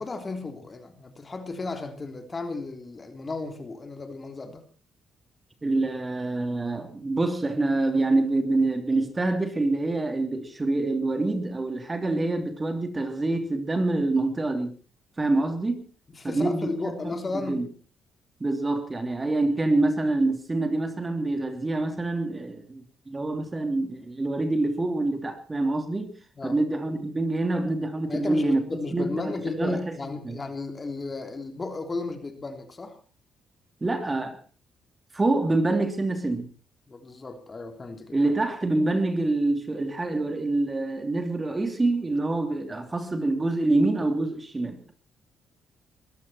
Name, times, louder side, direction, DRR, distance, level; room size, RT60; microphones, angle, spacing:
voice 1, 0.0-4.6 16.2-17.6 26.4-26.6 28.1-33.0 36.9-38.2, left 3 dB, 30° left, 3.4 m, -34 dB
voice 2, 5.6-14.8 15.2-15.9 16.2-17.7 18.4-26.2 26.4-28.6 28.9-30.0 30.2-30.4 33.8-34.4 35.1-36.5 38.1-44.9, right 2 dB, 25° right, 3.0 m, -26 dB
22.5 x 15.0 x 4.4 m
cardioid pair, 90°, 0 cm